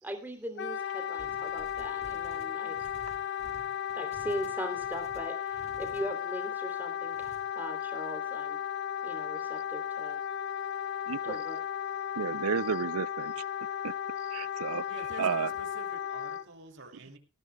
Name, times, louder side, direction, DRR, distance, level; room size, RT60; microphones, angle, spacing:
voice 1, 0.0-2.8 3.9-8.6 9.0-10.2 11.3-11.6, equal, 10° right, 3.0 m, -40 dB
Wind instrument woodwind instrument, 0.6-16.4, left 9 dB, 50° left, 1.1 m, -35 dB
sound 1, 1.2-6.1 7.1-7.4, left 1 dB, 30° left, 2.3 m, -53 dB
voice 2, 11.1-11.4 12.2-13.4 13.8-13.9 14.2-14.9 15.2-15.5, right 6 dB, 75° right, 0.6 m, -32 dB
voice 3, 14.9-17.2, right 2 dB, 55° right, 3.1 m, -47 dB
19.0 x 15.5 x 2.3 m
head